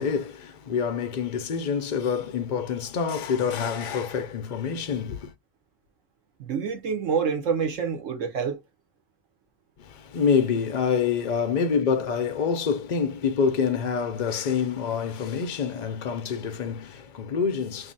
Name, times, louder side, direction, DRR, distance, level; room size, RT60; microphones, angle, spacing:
voice 1, 0.0-5.3 9.8-17.9, left 6 dB, 65° left, 0.4 m, -26 dB
voice 2, 6.4-8.6, right 6 dB, 70° right, 1.2 m, -27 dB
2.8 x 2.7 x 3.8 m
omnidirectional pair, 1.4 m